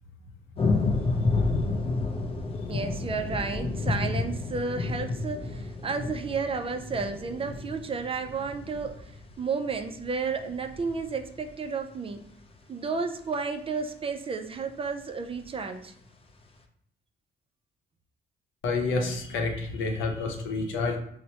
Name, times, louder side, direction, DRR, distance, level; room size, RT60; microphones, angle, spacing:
sound 1, 0.6-12.4 15.0-15.1 15.3-15.4, left 3 dB, 30° left, 0.5 m, -30 dB
voice 1, 2.7-12.2 12.7-15.9, right 4 dB, 30° right, 6 dB, 0.4 m, -32 dB
voice 2, 18.6-21.0, left 3 dB, 85° left, 2 dB, 0.7 m, -29 dB
4.3 x 2.1 x 2.8 m, 0.70 s
cardioid pair, 90°, 20 cm